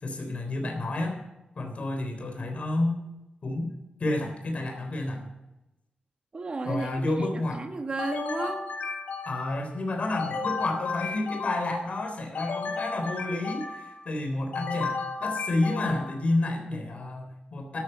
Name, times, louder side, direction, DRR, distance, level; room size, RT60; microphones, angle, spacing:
voice 1, 0.0-1.2 1.6-3.0 3.4-3.7 4.0-5.3 6.6-7.6 9.2-15.0 15.2-17.8, left 2 dB, 50° left, 3 dB, 3.6 m, -30 dB
voice 2, 6.3-8.6, right 3 dB, 35° right, 6 dB, 1.5 m, -33 dB
sound 1, 8.0-9.6 10.2-11.9 12.3-14.0 14.5-16.2, left 4 dB, 75° left, 2.8 m, -34 dB
13.5 x 13.0 x 5.5 m, 0.94 s
wide cardioid pair, 150°, 3 cm